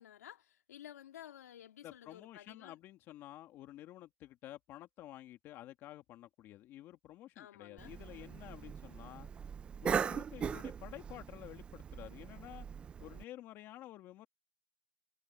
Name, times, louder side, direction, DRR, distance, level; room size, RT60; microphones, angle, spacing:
voice 1, 0.0-2.8 7.3-7.9, left 11 dB, 65° left, 3.2 m, -53 dB
voice 2, 1.8-9.3 9.8-12.7 13.0-14.3, left 14 dB, 25° left, 2.3 m, -51 dB
Cough, 7.8-13.2, right 7 dB, 10° right, 0.7 m, -40 dB
hypercardioid pair, 155°, 9 cm